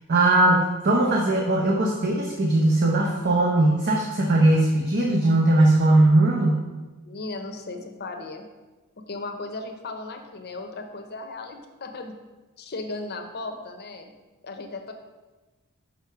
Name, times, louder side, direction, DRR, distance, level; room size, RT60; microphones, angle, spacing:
voice 1, 0.1-6.6, right 2 dB, 45° right, -1 dB, 0.8 m, -20 dB
voice 2, 7.0-8.5 9.1-12.1 12.6-14.1 14.4-14.9, left 3 dB, 45° left, 5 dB, 0.8 m, -36 dB
5.6 x 5.0 x 5.7 m, 1.2 s
head